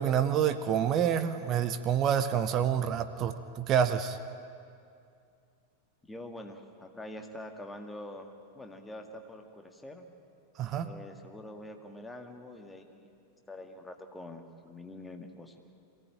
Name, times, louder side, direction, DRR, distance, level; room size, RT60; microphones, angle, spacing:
voice 1, 0.0-4.2 10.6-10.9, right 8 dB, 35° right, 10 dB, 0.9 m, -28 dB
voice 2, 6.1-10.0 10.8-13.1 13.5-15.5, left 1 dB, 10° left, 4 dB, 2.1 m, -45 dB
23.5 x 17.0 x 9.1 m, 2.4 s
figure-of-eight pair, 90°, 0 cm